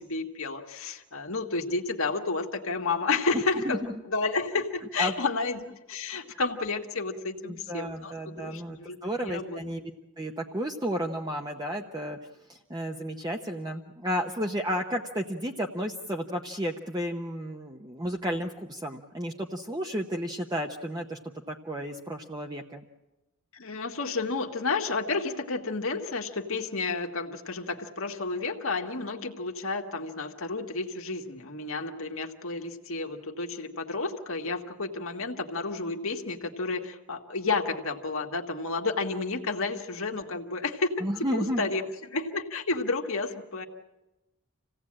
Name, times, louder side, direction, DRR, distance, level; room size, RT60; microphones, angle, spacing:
voice 1, 0.0-3.8 4.1-9.6 23.5-41.0 41.3-43.7, left 3 dB, 70° left, 3 dB, 1.7 m, -31 dB
voice 2, 3.3-3.9 5.0-5.1 7.4-9.9 10.2-12.2 12.5-21.2 21.5-22.8 41.0-41.7, equal, 20° right, 2 dB, 0.9 m, -32 dB
27.0 x 17.0 x 8.7 m, 1.0 s
head